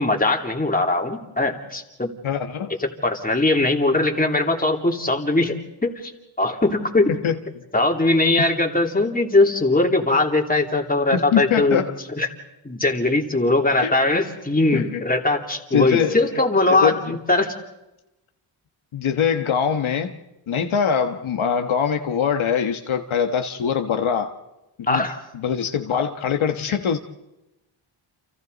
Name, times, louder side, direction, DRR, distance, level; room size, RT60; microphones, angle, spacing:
voice 1, 0.0-2.1 2.8-6.1 6.4-7.1 7.7-11.8 12.1-12.3 12.6-17.5 24.9-25.2, left 2 dB, 15° left, 2 dB, 3.2 m, -20 dB
voice 2, 2.2-2.7 7.2-7.4 11.1-11.9 13.7-13.9 14.7-15.0 15.7-16.2 16.7-17.0 18.9-20.1 20.5-24.4 24.9-25.0 25.3-27.0, left 7 dB, 70° left, 6 dB, 1.4 m, -23 dB
30.0 x 28.0 x 4.1 m, 0.97 s
cardioid pair, 85°, 50 cm